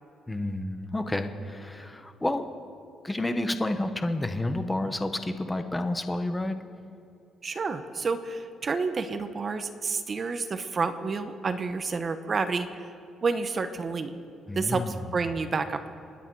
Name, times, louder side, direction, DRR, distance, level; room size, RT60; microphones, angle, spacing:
voice 1, 0.3-2.5 3.0-6.6 14.5-15.0, left 1 dB, 10° left, 8 dB, 1.0 m, -30 dB
voice 2, 7.4-12.9 13.2-14.2 14.5-15.9, right 4 dB, 30° right, 10 dB, 0.8 m, -29 dB
29.0 x 9.9 x 4.7 m, 2.6 s
cardioid pair, 145°, 0 cm